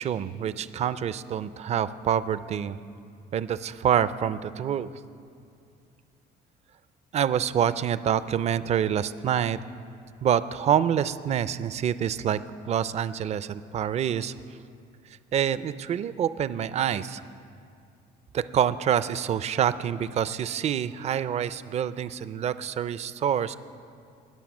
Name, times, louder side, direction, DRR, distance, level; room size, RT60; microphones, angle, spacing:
voice 1, 0.0-2.8 3.3-4.9 7.1-9.6 10.2-12.4 12.7-14.3 15.3-17.2 18.3-23.6, right 9 dB, 40° right, 15 dB, 0.4 m, -26 dB
19.5 x 7.0 x 6.1 m, 2.4 s
cardioid pair, 110°, 17 cm